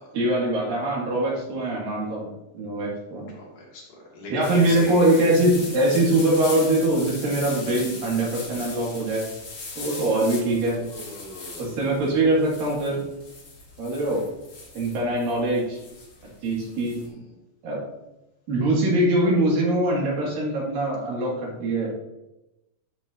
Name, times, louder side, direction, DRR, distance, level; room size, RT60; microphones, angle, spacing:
voice 1, 0.1-2.3 2.5-3.3 4.3-9.2 9.8-10.8 11.6-13.0 13.8-14.2 14.7-15.8 16.4-17.0 17.6-17.8 18.5-21.9, right 1 dB, 80° right, -4 dB, 4.0 m, -23 dB
voice 2, 3.3-5.3 10.4-11.8, left 1 dB, 65° left, -4 dB, 3.7 m, -39 dB
sound 1, 4.4-17.1, left 3 dB, 40° left, 2.0 m, -40 dB
11.5 x 6.4 x 2.8 m, 0.93 s
omnidirectional pair, 3.9 m